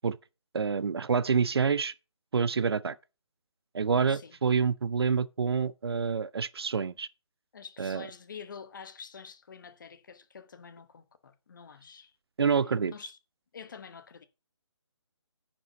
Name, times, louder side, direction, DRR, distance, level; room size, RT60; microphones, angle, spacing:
voice 1, 0.5-1.9 2.3-3.0 3.7-7.1 7.8-8.1 12.4-12.9, right 5 dB, 55° right, 0.5 m, -27 dB
voice 2, 7.5-12.1 12.9-13.2 13.5-14.3, left 6 dB, 40° left, 1.1 m, -47 dB
9.7 x 5.4 x 5.3 m
figure-of-eight pair, 160°, 16 cm